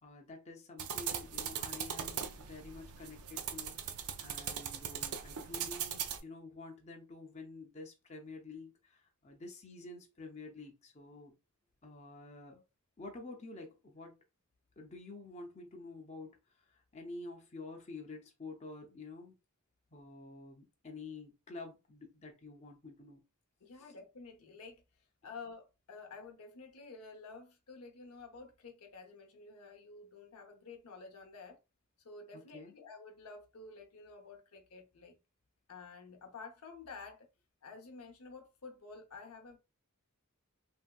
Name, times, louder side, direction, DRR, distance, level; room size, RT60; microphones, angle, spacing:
voice 1, 0.0-3.8 4.2-11.3 11.8-12.6 13.0-14.2 14.8-16.4 16.7-19.4 19.9-23.2 23.8-23.9 32.3-32.7, left 3 dB, 30° left, 0.6 m, -49 dB
sound 1, 0.8-6.2, right 8 dB, 90° right, 0.5 m, -40 dB
voice 2, 23.6-24.8 25.2-31.6 32.0-35.2 35.7-37.3 37.6-39.6, left 4 dB, 85° left, 0.7 m, -51 dB
3.2 x 2.6 x 2.3 m
head